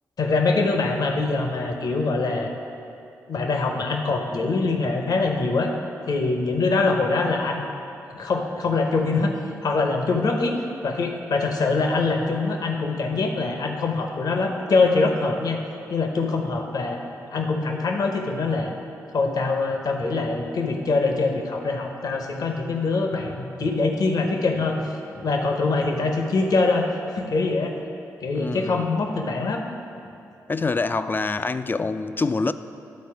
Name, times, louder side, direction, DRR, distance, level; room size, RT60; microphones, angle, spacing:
voice 1, 0.2-2.5 3.3-5.7 6.1-7.7 8.1-10.6 10.8-15.6 15.9-17.0 17.3-18.7 19.1-27.7 28.2-29.6, left 3 dB, 60° left, 0.9 m, -24 dB
voice 2, 28.3-28.9 30.5-32.5, left 3 dB, 30° left, 0.4 m, -25 dB
11.0 x 4.2 x 4.8 m
supercardioid pair, 45°, 7 cm